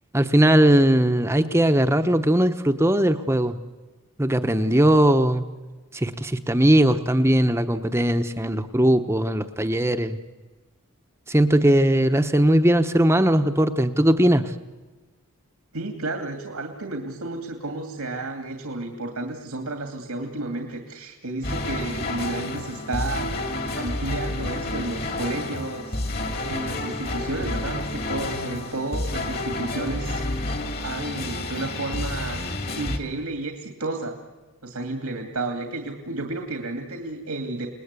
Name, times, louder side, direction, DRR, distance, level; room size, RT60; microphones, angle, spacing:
voice 1, 0.1-3.6 4.2-5.4 5.9-10.2 11.3-14.4, right 1 dB, 10° right, 8 dB, 0.9 m, -19 dB
voice 2, 15.7-26.0 26.4-30.2 30.8-32.5 32.7-34.2 34.6-37.7, right 2 dB, 90° right, 4 dB, 2.5 m, -32 dB
sound 1, 21.4-33.0, left 2 dB, 45° left, 2.3 m, -30 dB
29.5 x 20.0 x 8.3 m, 1.3 s
head